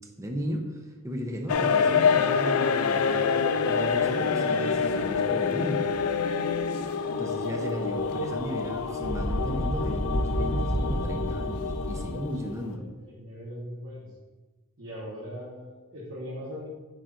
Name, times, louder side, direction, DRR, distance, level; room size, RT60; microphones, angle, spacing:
voice 1, 0.2-5.9 6.8-12.9, equal, 15° right, 3 dB, 0.7 m, -35 dB
sound 1, 1.5-12.7, left 5 dB, 80° left, 0.4 m, -27 dB
sound 2, 3.9-4.1 4.7-5.2 5.7-6.9 7.2-12.0, equal, 60° left, 1.2 m, -32 dB
voice 2, 12.4-14.1 14.8-16.7, equal, 70° right, -6 dB, 1.4 m, -40 dB
8.9 x 5.5 x 2.5 m, 1.2 s
head